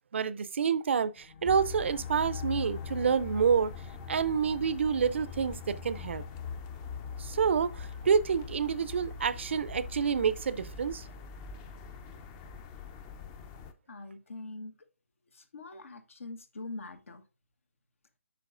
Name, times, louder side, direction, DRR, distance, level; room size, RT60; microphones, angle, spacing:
voice 1, 0.1-3.7 4.1-6.2 7.2-11.0, right 6 dB, 60° right, 0.5 m, -28 dB
sound 1, 1.2-12.5, left 3 dB, 50° left, 1.1 m, -52 dB
sound 2, 1.5-13.7, left 6 dB, 20° left, 0.5 m, -42 dB
voice 2, 13.9-14.7 15.3-17.2, left 2 dB, 75° left, 1.2 m, -43 dB
8.3 x 5.8 x 2.4 m
figure-of-eight pair, 145°, 7 cm